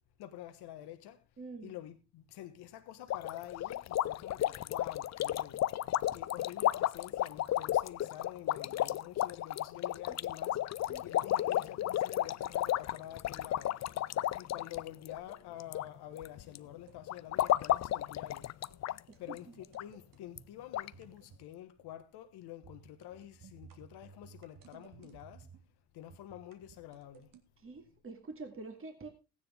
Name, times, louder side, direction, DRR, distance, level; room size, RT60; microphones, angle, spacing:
voice 1, 0.2-1.2 1.6-5.6 6.1-10.6 11.0-13.7 14.4-18.5 19.2-25.4 25.9-27.3, left 12 dB, 70° left, 1.3 m, -48 dB
voice 2, 1.4-1.7 10.1-10.2 10.9-11.1 19.1-19.4 27.6-29.1, right 3 dB, 30° right, 2.5 m, -46 dB
sound 1, 3.1-15.9 16.1-16.6 17.1-19.0 19.3-19.4 19.7-19.8 20.4-20.5 20.7-20.9, left 13 dB, 40° left, 0.5 m, -33 dB
sound 2, 16.6-17.0 17.7-18.0 18.3-18.4 18.7-18.8 19.1-20.5 20.9-21.5 21.8-22.0 22.6-25.7 26.1-27.4, right 6 dB, 55° right, 1.8 m, -57 dB
15.0 x 9.8 x 3.6 m
supercardioid pair, 65°, 41 cm